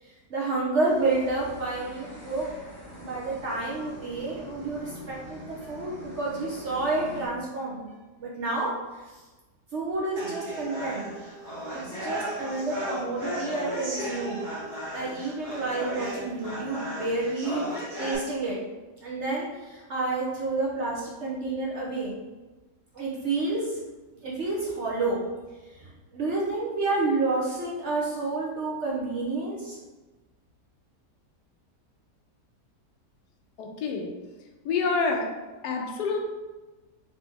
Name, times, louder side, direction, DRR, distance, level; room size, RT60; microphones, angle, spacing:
voice 1, 0.0-2.5 3.0-7.8 8.2-9.2 9.7-11.1 11.8-14.4 14.9-17.6 18.0-18.6 19.0-22.1 22.9-23.8 24.2-25.2 25.6-29.8, right 3 dB, 55° right, -5 dB, 0.8 m, -29 dB
sound 1, 0.8-7.3, right 1 dB, 25° left, 0.7 m, -44 dB
sound 2, 10.2-18.1, equal, 75° right, 1.9 m, -35 dB
voice 2, 33.6-34.1 34.6-35.3 35.6-36.2, left 4 dB, 75° left, 2 dB, 1.2 m, -27 dB
4.1 x 2.9 x 3.4 m, 1.2 s
omnidirectional pair, 1.8 m